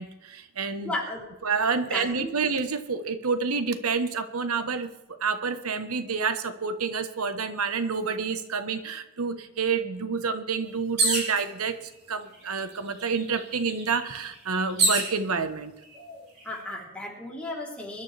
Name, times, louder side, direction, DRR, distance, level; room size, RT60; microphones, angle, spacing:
voice 1, 0.0-0.9 1.4-4.9 5.2-15.7, right 5 dB, 90° right, 10 dB, 1.1 m, -28 dB
voice 2, 0.8-1.2 1.7-2.3 16.4-18.0, left 1 dB, 5° left, -4 dB, 3.3 m, -34 dB
sound 1, 11.0-11.4 12.3-12.4 12.7-15.1 15.9-16.4, right 2 dB, 35° right, 3.9 m, -26 dB
23.0 x 12.0 x 3.4 m, 0.98 s
head